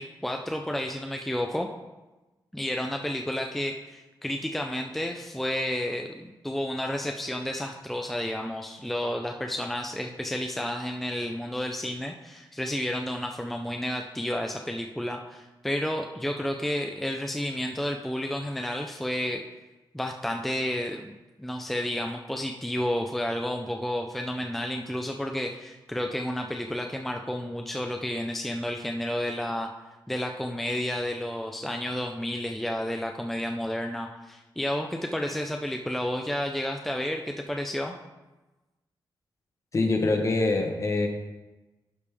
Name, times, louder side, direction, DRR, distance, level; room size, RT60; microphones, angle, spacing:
voice 1, 0.0-1.7 2.5-19.4 19.9-29.7 30.1-37.9, left 1 dB, ahead, 3 dB, 0.4 m, -31 dB
voice 2, 39.7-41.1, left 2 dB, 40° left, 3 dB, 1.0 m, -24 dB
11.5 x 5.1 x 3.4 m, 1.1 s
wide cardioid pair, 140°, 8 cm